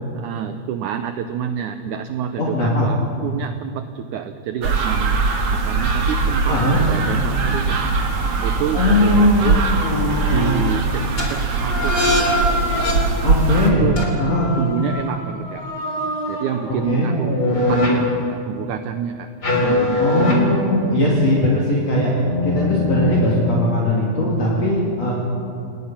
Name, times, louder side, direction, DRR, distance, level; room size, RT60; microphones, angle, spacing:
voice 1, 0.2-5.2 5.5-7.8 8.4-9.6 10.3-12.5 13.6-14.0 14.6-15.7 16.3-19.3 19.6-20.1 20.6-20.8, right 8 dB, 75° right, 9 dB, 1.8 m, -28 dB
voice 2, 2.4-2.9 6.5-6.8 8.7-9.5 13.2-13.9 14.2-14.5 16.7-17.1 20.0-22.1 22.4-25.1, left 1 dB, 45° left, -5 dB, 4.0 m, -19 dB
sound 1, 4.6-13.7, right 4 dB, 45° right, 2.5 m, -21 dB
sound 2, 6.0-10.8 11.2-11.3 11.6-12.9 14.0-17.9 19.4-20.3 21.2-21.7 22.2-23.7, left 1 dB, 25° left, 3.9 m, -24 dB
27.5 x 20.5 x 5.9 m, 2.6 s
omnidirectional pair, 4.3 m